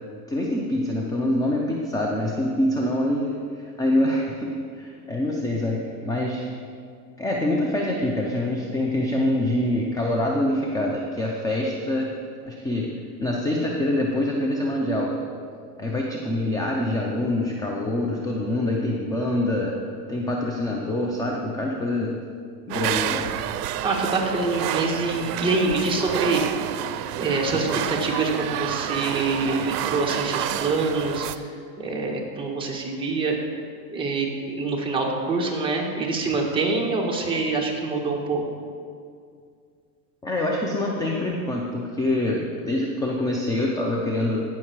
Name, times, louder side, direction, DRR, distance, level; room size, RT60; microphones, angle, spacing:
voice 1, 0.3-3.4 3.8-6.5 7.2-12.1 12.5-12.9 13.2-15.2 15.8-19.7 20.1-22.1 22.7-23.3 40.2-44.4, left 1 dB, 10° left, -1 dB, 0.4 m, -25 dB
sound 1, 22.7-31.4, right 12 dB, 70° right, 0.6 m, -29 dB
voice 2, 23.8-26.4 27.2-31.3 31.8-33.4 33.9-38.4, right 3 dB, 10° right, -2 dB, 1.5 m, -25 dB
16.0 x 5.8 x 4.7 m, 2.2 s
supercardioid pair, 135°, 49 cm